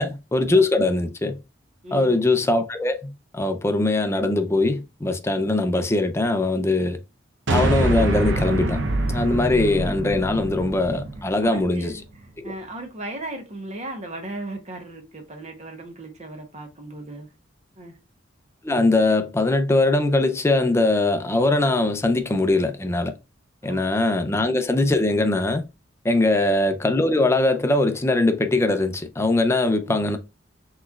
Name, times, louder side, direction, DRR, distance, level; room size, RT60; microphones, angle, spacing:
voice 1, 0.0-1.4 1.9-7.0 7.5-8.8 9.1-12.0 12.4-12.5 18.6-23.1 23.6-25.6 26.0-30.2, left 2 dB, 15° left, 0.4 m, -21 dB
voice 2, 1.8-2.2 11.4-17.3 17.8-17.9 23.7-24.0 29.8-30.1, right 1 dB, 35° right, 0.9 m, -37 dB
sound 1, 7.5-11.9, right 1 dB, 70° right, 0.7 m, -25 dB
6.0 x 3.1 x 2.4 m
head